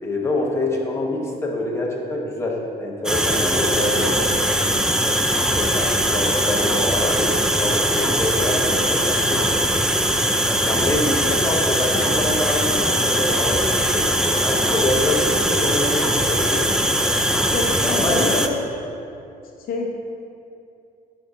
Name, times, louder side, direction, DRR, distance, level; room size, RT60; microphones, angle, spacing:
voice 1, 0.0-5.2 5.5-9.7 10.6-16.7 17.9-18.3, left 1 dB, 15° left, -2 dB, 1.0 m, -26 dB
sound 1, 3.0-18.5, equal, 5° right, 0.4 m, -20 dB
voice 2, 17.5-18.6 19.6-19.9, left 3 dB, 60° left, 0 dB, 0.8 m, -27 dB
11.0 x 4.8 x 2.7 m, 2.6 s
cardioid pair, 110°, 17 cm